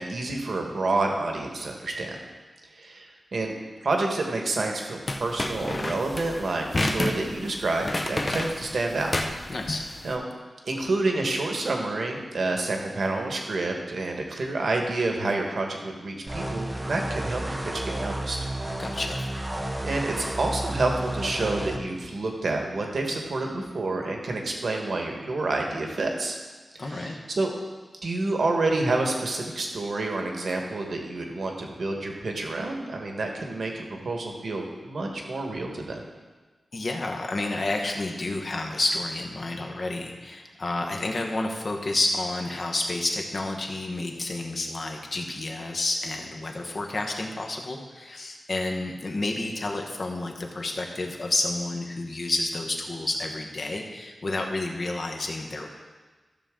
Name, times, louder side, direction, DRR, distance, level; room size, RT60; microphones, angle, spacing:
voice 1, 0.0-2.2 2.7-3.5 3.8-9.1 10.0-10.2 10.7-18.4 19.8-26.4 26.7-27.5 28.0-36.0, right 2 dB, 60° right, 2 dB, 1.4 m, -28 dB
sound 1, 5.1-10.1, left 1 dB, 25° left, 0.7 m, -30 dB
voice 2, 9.5-9.8 18.8-19.3 26.8-27.2 36.7-55.7, left 2 dB, 45° left, 2 dB, 1.2 m, -30 dB
sound 2, 16.3-21.8, right 1 dB, 15° right, 0.7 m, -32 dB
14.0 x 6.9 x 3.8 m, 1.3 s
wide cardioid pair, 155°, 0 cm